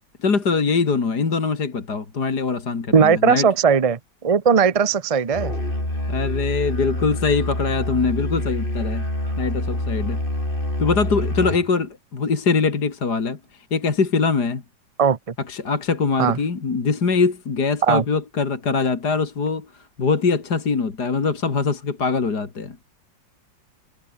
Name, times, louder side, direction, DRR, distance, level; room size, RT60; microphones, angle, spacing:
voice 1, 0.2-3.5 6.1-9.1 9.4-10.2 10.8-14.6 15.5-22.8, left 4 dB, 55° left, 3.2 m, -23 dB
voice 2, 2.9-5.5 15.0-15.2 16.2-16.4 17.9-18.0, right 6 dB, 50° right, 0.4 m, -18 dB
Musical instrument, 5.3-11.7, left 1 dB, 25° left, 7.1 m, -26 dB
omnidirectional pair, 2.1 m